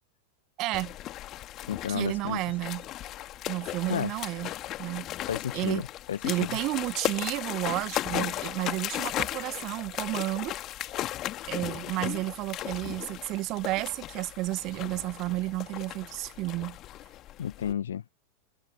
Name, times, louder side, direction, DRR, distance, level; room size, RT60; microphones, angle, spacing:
voice 1, 0.6-0.9 1.9-2.8 3.5-4.5 4.8-5.1 5.5-5.8 6.2-10.5 11.5-16.8, right 19 dB, 40° right, 1.7 m, -31 dB
sound 1, 0.7-17.7, left 14 dB, 35° left, 2.4 m, -36 dB
voice 2, 1.7-2.4 3.9-4.1 5.3-6.3 17.4-18.0, left 9 dB, 65° left, 1.8 m, -32 dB
figure-of-eight pair, 90°, 0 cm